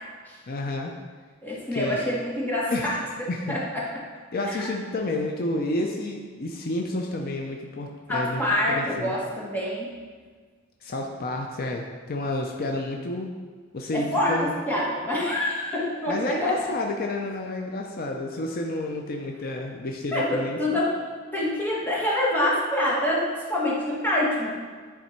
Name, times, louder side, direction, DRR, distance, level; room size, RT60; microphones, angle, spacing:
voice 1, 0.5-0.9 1.7-2.0 2.7-3.0 3.3-3.6 4.3-8.4 8.7-9.1 10.8-13.3 13.7-14.5 16.1-20.6, left 2 dB, 45° left, 1 dB, 0.5 m, -30 dB
voice 2, 1.4-3.0 3.5-3.6 4.5-4.7 8.1-9.9 13.9-16.7 20.1-21.0 21.3-24.5, left 1 dB, 10° left, -6 dB, 1.4 m, -26 dB
10.0 x 3.5 x 4.4 m, 1.5 s
head